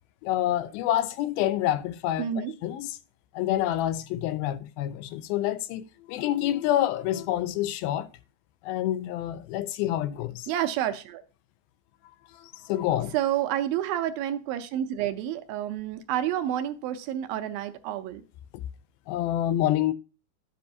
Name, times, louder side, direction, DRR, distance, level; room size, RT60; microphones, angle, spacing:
voice 1, 0.2-3.0 3.3-8.1 8.6-10.5 12.3-13.1 19.1-19.9, left 13 dB, 80° left, 2.3 m, -27 dB
voice 2, 2.2-2.5 10.5-11.2 13.1-18.2, right 11 dB, 80° right, 2.4 m, -29 dB
11.5 x 7.7 x 2.7 m
omnidirectional pair, 4.4 m